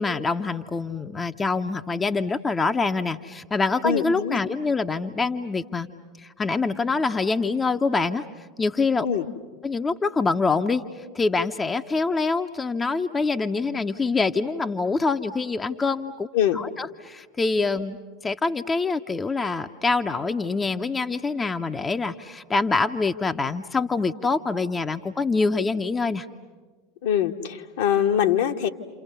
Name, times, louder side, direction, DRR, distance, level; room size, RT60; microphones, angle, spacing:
voice 1, 0.0-5.9 6.2-8.3 8.6-9.1 9.6-10.8 11.1-16.3 16.5-18.0 18.2-26.3, left 4 dB, 20° left, 7 dB, 0.8 m, -25 dB
voice 2, 3.8-4.4 9.0-9.2 16.3-16.6 27.0-28.7, left 9 dB, 60° left, 4 dB, 1.5 m, -23 dB
29.5 x 28.5 x 6.8 m, 1.4 s
figure-of-eight pair, 80°, 0 cm